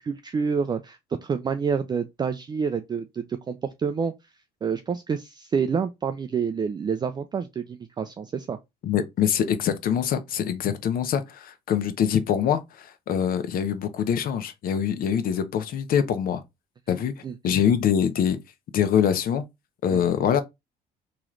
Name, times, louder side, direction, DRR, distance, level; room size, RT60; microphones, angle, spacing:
voice 1, 0.0-4.1 4.6-8.6 16.9-17.0 17.2-17.3 19.9-20.0, right 6 dB, 25° right, 0.4 m, -28 dB
voice 2, 8.8-16.4 16.9-18.4 18.7-19.4 19.8-20.4, left 8 dB, 60° left, 0.8 m, -24 dB
3.1 x 3.0 x 3.7 m
cardioid pair, 110°, 17 cm